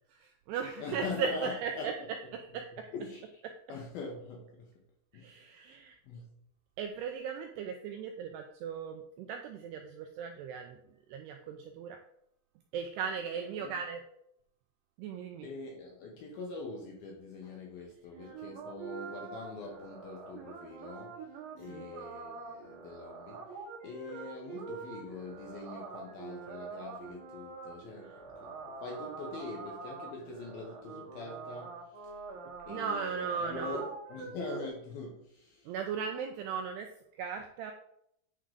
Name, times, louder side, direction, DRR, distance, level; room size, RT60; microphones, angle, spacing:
voice 1, 0.1-1.9 2.5-2.9 5.1-6.0 6.8-10.8 11.1-12.0 12.7-14.0 15.0-15.5 21.7-21.9 32.7-33.9 35.7-37.7, right 6 dB, 90° right, 4 dB, 2.4 m, -37 dB
voice 2, 0.8-2.1 2.9-3.4 3.7-4.8 5.1-5.8 6.0-6.3 13.6-13.8 15.4-32.2 32.7-35.7, left 3 dB, 75° left, -1 dB, 2.3 m, -43 dB
sound 1, 18.1-34.7, right 5 dB, 60° right, 3.0 m, -45 dB
9.8 x 3.7 x 5.0 m, 0.73 s
omnidirectional pair, 5.4 m